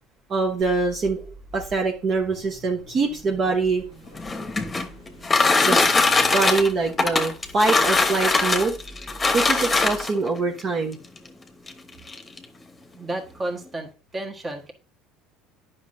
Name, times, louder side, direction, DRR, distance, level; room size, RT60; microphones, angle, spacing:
voice 1, 0.3-3.8 5.6-5.8 6.3-8.7 9.3-11.0, right 3 dB, 45° right, 1 dB, 1.1 m, -24 dB
Car / Idling / Accelerating revving vroom, 0.6-10.0, right 1 dB, 90° right, 3.0 m, -46 dB
sound 1, 4.1-10.3 11.2-11.3 11.7-11.8 12.1-12.4, left 3 dB, 20° left, 1.1 m, -21 dB
voice 2, 12.9-14.7, right 1 dB, 25° right, 3 dB, 1.5 m, -32 dB
10.0 x 5.5 x 2.7 m, 0.33 s
hypercardioid pair, 75°, 0 cm